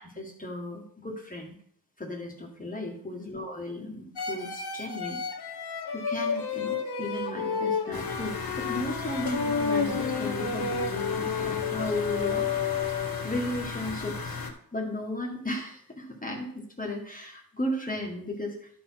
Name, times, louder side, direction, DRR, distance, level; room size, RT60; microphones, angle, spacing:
voice 1, 0.0-1.5 2.0-5.2 5.9-12.5 12.8-14.4 14.7-18.7, left 1 dB, 20° left, -1 dB, 1.6 m, -35 dB
sound 1, 4.2-13.5, left 6 dB, 80° left, 1.0 m, -31 dB
sound 2, 7.9-14.5, left 4 dB, 65° left, 1.5 m, -36 dB
11.5 x 4.2 x 5.8 m, 0.64 s
wide cardioid pair, 95°, 38 cm